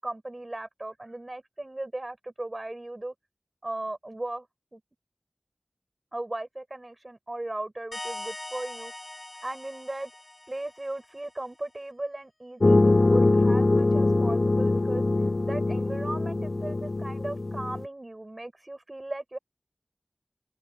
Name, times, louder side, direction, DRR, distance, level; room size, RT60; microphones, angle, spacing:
voice 1, 0.0-3.1 3.6-4.5 4.7-4.8 6.1-8.9 9.4-10.1 10.5-15.0 15.4-19.4, right 2 dB, 50° right, 7.5 m, -37 dB
sound 1, 7.9-11.3, left 2 dB, 50° left, 6.7 m, -41 dB
sound 2, 12.6-17.8, left 2 dB, 80° left, 0.3 m, -23 dB
open air
wide cardioid pair, 40°, 0 cm